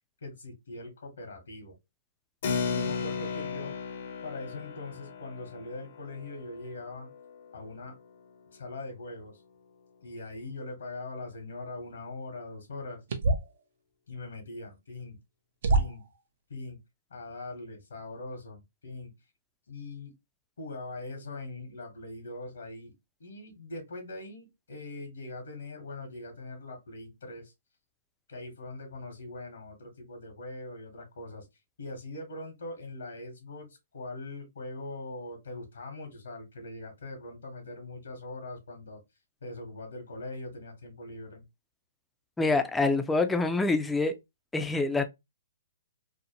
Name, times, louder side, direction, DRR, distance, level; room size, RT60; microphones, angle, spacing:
voice 1, 0.2-1.8 2.7-3.7 4.2-7.1 7.5-8.0 8.5-9.4 10.0-13.0 14.1-15.2 15.7-16.0 16.5-16.8 17.1-19.1 19.7-20.1 20.6-22.9 23.2-27.5 28.3-31.5 31.8-39.0 39.4-41.5, left 2 dB, 80° left, 0.9 m, -41 dB
Keyboard (musical), 2.4-8.5, left 5 dB, 55° left, 0.5 m, -36 dB
sound 1, 13.1-13.6 14.9-15.0 15.6-16.2, right 3 dB, 60° right, 0.5 m, -26 dB
voice 2, 42.4-44.1 44.5-45.1, left 3 dB, 5° left, 0.3 m, -26 dB
2.6 x 2.1 x 2.7 m
hypercardioid pair, 145°, 0 cm